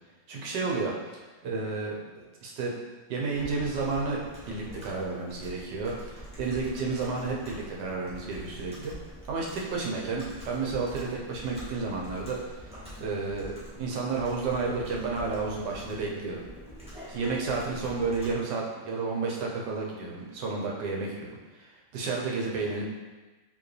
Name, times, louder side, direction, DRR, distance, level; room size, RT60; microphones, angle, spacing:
voice 1, 0.3-2.7 3.1-4.2 4.5-8.9 9.3-16.4 17.1-21.3 21.5-22.8, right 4 dB, 70° right, -2 dB, 1.3 m, -31 dB
Computer keyboard, 3.3-18.3, equal, 5° right, 1.0 m, -45 dB
4.7 x 3.4 x 3.2 m, 1.2 s
omnidirectional pair, 2.0 m